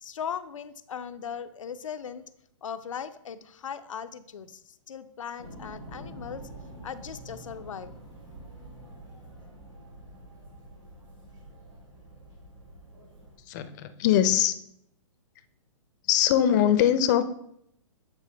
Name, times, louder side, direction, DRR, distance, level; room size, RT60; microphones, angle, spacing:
voice 1, 0.0-2.3 2.6-6.4 6.8-7.9, left 7 dB, 90° left, 10 dB, 0.5 m, -38 dB
sound 1, 5.4-13.4, right 1 dB, 85° right, 2.4 m, -46 dB
voice 2, 13.5-14.6 16.1-17.2, left 10 dB, 35° left, 11 dB, 0.5 m, -22 dB
8.3 x 4.4 x 3.3 m, 0.73 s
hypercardioid pair, 145°, 16 cm